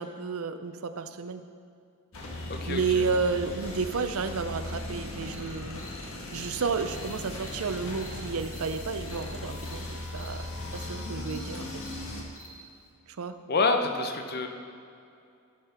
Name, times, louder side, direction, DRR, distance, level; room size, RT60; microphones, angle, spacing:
voice 1, 0.0-1.4 2.7-5.8 6.3-10.4 10.7-11.7 13.2-13.4, right 5 dB, 75° right, 10 dB, 0.5 m, -31 dB
sound 1, 2.1-12.2, left 1 dB, 70° left, 1.5 m, -38 dB
voice 2, 2.5-3.0 13.5-14.5, left 3 dB, 45° left, 5 dB, 0.8 m, -27 dB
Cricket, 4.6-4.8 5.3-5.4 5.8-5.9 6.3-6.4 6.8-7.0 7.4-7.5 7.9-8.1 8.5-8.6 9.0-9.2 9.6-9.7 10.1-10.3 10.7-10.8 11.2-11.4 11.8-11.9 12.3-12.5, left 1 dB, 15° left, 1.5 m, -50 dB
12.5 x 5.9 x 5.7 m, 2.5 s
head